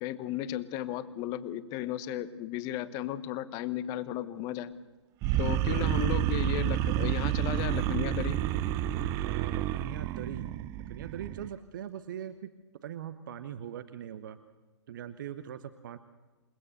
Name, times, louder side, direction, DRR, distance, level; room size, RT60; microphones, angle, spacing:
voice 1, 0.0-4.8 5.4-8.4, left 12 dB, 25° left, 15 dB, 1.1 m, -35 dB
sound 1, 5.2-11.5, right 12 dB, 20° right, 0.6 m, -29 dB
voice 2, 9.2-12.5 12.8-14.4 14.9-16.0, right 9 dB, 45° right, 11 dB, 1.0 m, -41 dB
28.0 x 19.0 x 6.7 m, 1.2 s
figure-of-eight pair, 115°, 15 cm